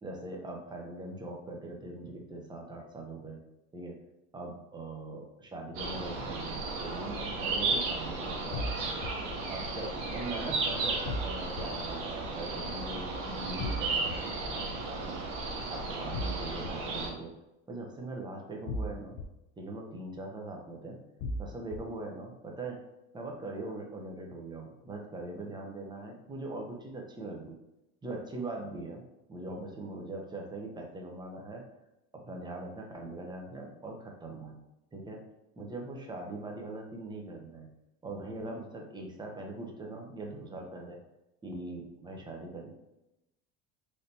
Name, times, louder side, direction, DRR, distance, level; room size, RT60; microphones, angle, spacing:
voice 1, 0.0-3.4 3.7-4.0 4.3-9.0 9.5-15.2 15.7-17.3 17.7-19.2 19.6-21.0 21.4-22.8 23.1-27.6 28.0-29.0 29.3-31.6 32.1-34.5 34.9-35.2 35.6-37.7 38.0-41.0 41.4-42.7, right 2 dB, 15° right, 1 dB, 0.6 m, -41 dB
sound 1, 5.7-17.1, right 3 dB, 80° right, 0.8 m, -34 dB
sound 2, 8.5-9.1 11.1-11.6 13.6-14.2 16.1-16.7 18.7-19.2 21.2-21.8, left 1 dB, 70° left, 0.5 m, -34 dB
3.3 x 2.7 x 2.7 m, 0.92 s
supercardioid pair, 110°, 33 cm